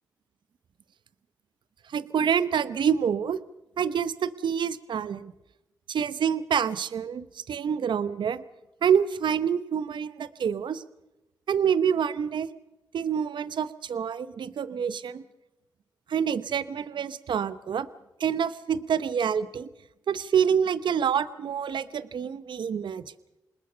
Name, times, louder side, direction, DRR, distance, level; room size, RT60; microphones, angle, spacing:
voice 1, 1.9-3.4 3.8-5.3 5.9-8.4 8.8-10.8 11.5-12.5 12.9-15.2 16.1-17.9 18.2-19.7 20.1-23.0, right 7 dB, 65° right, 15 dB, 0.9 m, -27 dB
26.5 x 20.0 x 5.7 m, 0.97 s
supercardioid pair, 45°, 8 cm